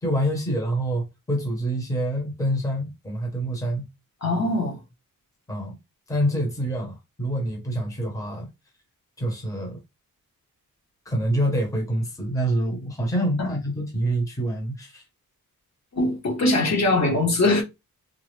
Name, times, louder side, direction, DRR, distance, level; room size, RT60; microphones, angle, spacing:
voice 1, 0.0-3.9 5.5-5.8 6.1-8.5 9.2-9.8 11.0-15.0, right 1 dB, 10° left, 1.0 m, -26 dB
voice 2, 4.2-4.8 13.4-13.5 15.9-17.6, left 2 dB, 50° left, 1.4 m, -22 dB
3.7 x 2.4 x 3.3 m
wide cardioid pair, 175°, 35 cm